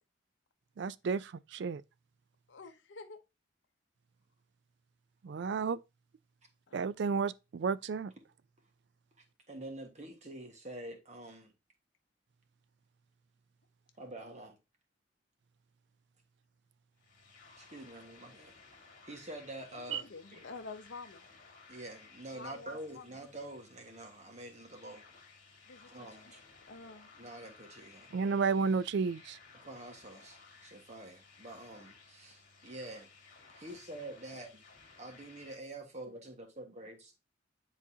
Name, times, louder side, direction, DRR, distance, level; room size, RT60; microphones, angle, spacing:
voice 1, 0.8-1.8 5.2-5.8 6.7-8.1 19.9-20.0 28.1-29.4, right 5 dB, 65° right, 0.4 m, -32 dB
voice 2, 2.5-3.2 6.7-6.8 19.7-21.2 22.3-23.1 25.7-26.1 26.7-27.1, left 4 dB, 70° left, 0.7 m, -48 dB
voice 3, 9.5-11.5 14.0-14.6 17.6-18.5 19.0-20.4 21.7-25.0 25.9-26.4 27.2-28.1 29.5-33.1 33.5-34.6 35.0-37.1, right 1 dB, 40° right, 1.5 m, -47 dB
sound 1, 17.0-35.6, left 4 dB, 45° left, 2.0 m, -58 dB
9.7 x 4.1 x 2.7 m
head